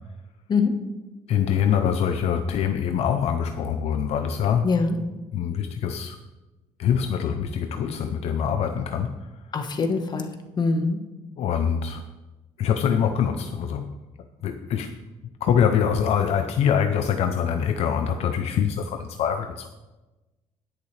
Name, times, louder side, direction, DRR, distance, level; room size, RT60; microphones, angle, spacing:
voice 1, 1.3-4.7 5.3-6.2 6.8-9.2 11.4-12.0 12.6-14.0 14.4-14.9 15.4-19.7, left 8 dB, 70° left, 7 dB, 0.6 m, -24 dB
voice 2, 4.6-5.0 9.5-11.0, left 4 dB, 40° left, 6 dB, 1.4 m, -24 dB
19.0 x 6.6 x 3.3 m, 1.1 s
cardioid pair, 110°, 11 cm